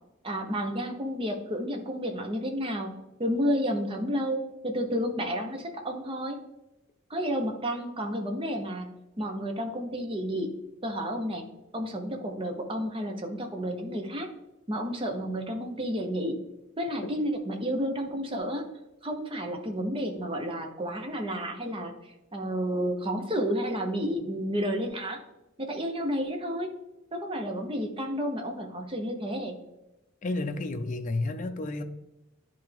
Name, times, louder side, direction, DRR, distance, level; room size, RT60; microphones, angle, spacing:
voice 1, 0.2-6.4 7.1-8.9 9.2-10.6 10.8-11.4 11.7-14.3 14.7-16.4 16.8-18.6 19.0-25.2 25.6-26.7 27.1-29.6, equal, 25° right, 3 dB, 0.8 m, -31 dB
voice 2, 30.2-31.8, left 2 dB, 40° left, 6 dB, 0.5 m, -31 dB
10.0 x 3.4 x 3.4 m, 0.94 s
head